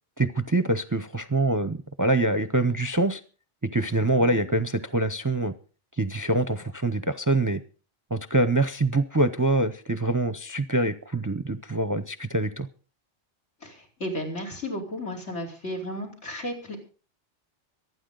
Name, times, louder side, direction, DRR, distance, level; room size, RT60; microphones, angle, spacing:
voice 1, 0.2-3.2 3.6-5.5 6.0-7.6 8.1-12.7, right 2 dB, 20° right, 11 dB, 0.6 m, -25 dB
voice 2, 13.6-16.8, equal, 80° left, 2 dB, 4.8 m, -34 dB
24.5 x 9.6 x 3.9 m, 0.38 s
omnidirectional pair, 1.2 m